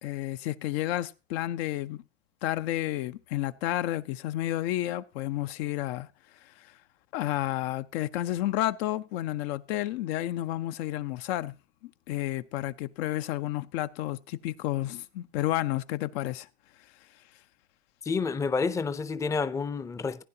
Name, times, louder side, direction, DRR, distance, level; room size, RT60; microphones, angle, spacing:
voice 1, 0.0-2.0 2.4-6.1 6.6-6.7 7.1-11.6 12.1-16.5, left 14 dB, 80° left, 0.7 m, -31 dB
voice 2, 18.0-20.2, left 4 dB, 10° left, 0.4 m, -29 dB
15.5 x 9.8 x 2.8 m
supercardioid pair, 120°, 31 cm